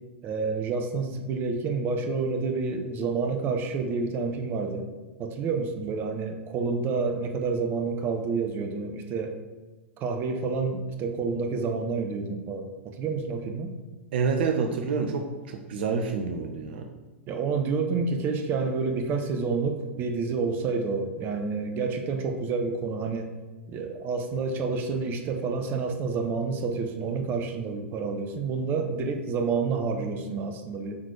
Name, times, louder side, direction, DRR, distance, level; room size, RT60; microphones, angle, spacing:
voice 1, 0.2-4.9 5.2-9.4 10.0-13.7 17.3-23.3 23.7-31.1, right 4 dB, 30° right, 6 dB, 0.9 m, -29 dB
voice 2, 14.1-16.9, right 5 dB, 55° right, 4 dB, 0.8 m, -28 dB
8.6 x 4.2 x 4.7 m, 1.2 s
figure-of-eight pair, 100°, 7 cm